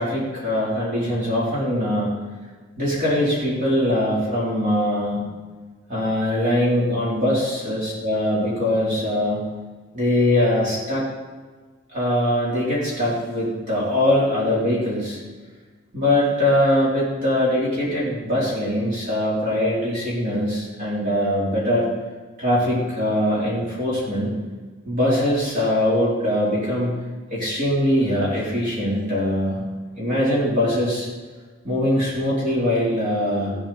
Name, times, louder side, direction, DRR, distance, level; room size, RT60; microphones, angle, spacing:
voice 1, 0.0-2.1 2.8-5.3 5.9-9.5 9.9-11.1 11.9-15.2 15.9-21.9 22.4-24.3 24.9-26.9 27.3-29.6 30.0-31.1 31.6-33.6, left 1 dB, 40° right, -6 dB, 4.0 m, -22 dB
16.5 x 9.4 x 4.3 m, 1.4 s
head